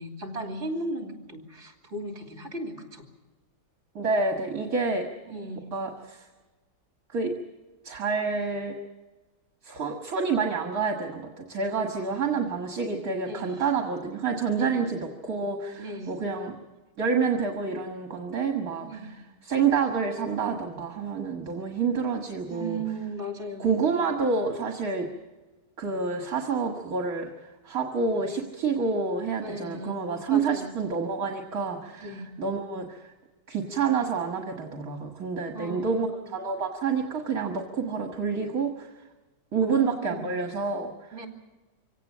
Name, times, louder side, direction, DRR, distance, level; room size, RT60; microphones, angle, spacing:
voice 1, 0.0-3.0 5.3-5.7 11.9-12.4 13.3-13.6 14.5-14.9 15.8-16.2 18.9-19.2 22.5-23.8 29.4-30.0 30.3-30.7 32.0-32.3 35.5-36.1 39.6-40.3 41.1-41.3, right 1 dB, 45° right, 3 dB, 3.2 m, -36 dB
voice 2, 4.0-5.1 5.7-6.2 7.1-7.3 7.8-8.8 9.6-16.5 17.0-22.8 23.6-25.1 25.8-27.3 27.7-33.0 33.5-38.9 39.5-40.9, right 5 dB, 60° right, 3 dB, 2.1 m, -28 dB
24.5 x 17.5 x 7.4 m, 1.2 s
omnidirectional pair, 1.7 m